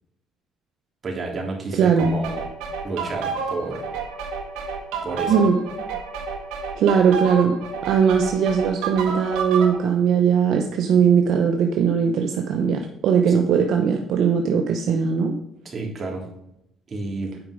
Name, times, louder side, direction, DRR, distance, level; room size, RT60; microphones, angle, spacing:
voice 1, 1.0-2.4 2.8-3.9 5.0-5.4 15.6-16.2 16.9-17.3, right 3 dB, 40° right, -1 dB, 3.1 m, -30 dB
voice 2, 1.7-2.1 5.3-5.6 6.8-7.6 7.9-15.3, right 7 dB, 70° right, 4 dB, 0.8 m, -19 dB
sound 1, 2.0-9.8, right 5 dB, 85° right, 1.7 m, -30 dB
8.9 x 5.3 x 5.0 m, 0.82 s
cardioid pair, 85°, 0 cm